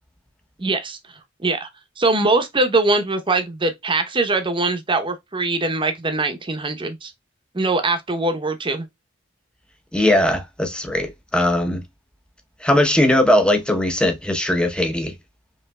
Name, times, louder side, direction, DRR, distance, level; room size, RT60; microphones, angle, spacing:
voice 1, 0.6-1.0 1.4-1.7 2.0-7.1 7.5-8.9, right 2 dB, 25° right, 0.9 m, -22 dB
voice 2, 9.9-11.8 12.6-15.1, left 1 dB, 5° left, 0.8 m, -19 dB
5.3 x 3.1 x 2.2 m
head